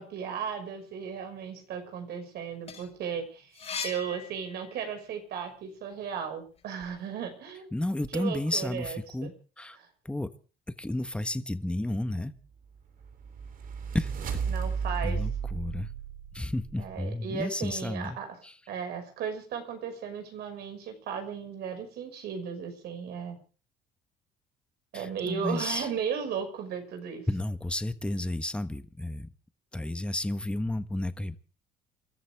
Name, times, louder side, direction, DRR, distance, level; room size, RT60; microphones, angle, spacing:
voice 1, 0.0-7.7 8.1-9.3 9.8-9.9 14.5-15.2 16.8-18.3 18.7-23.4 24.9-27.3, right 7 dB, 70° right, 6 dB, 5.9 m, -36 dB
sound 1, 2.4-5.1 5.5-6.9, left 6 dB, 40° left, 5.0 m, -41 dB
voice 2, 7.7-9.3 9.6-9.8 10.0-10.3 10.8-12.3 13.9-14.1 15.0-15.9 16.3-18.2 18.4-18.6 24.9-25.9 27.3-29.3 29.7-31.4, left 1 dB, 5° left, 11 dB, 1.3 m, -32 dB
sound 2, 12.7-17.0, right 6 dB, 55° right, 3.5 m, -34 dB
28.0 x 13.0 x 3.6 m, 0.37 s
cardioid pair, 110°, 17 cm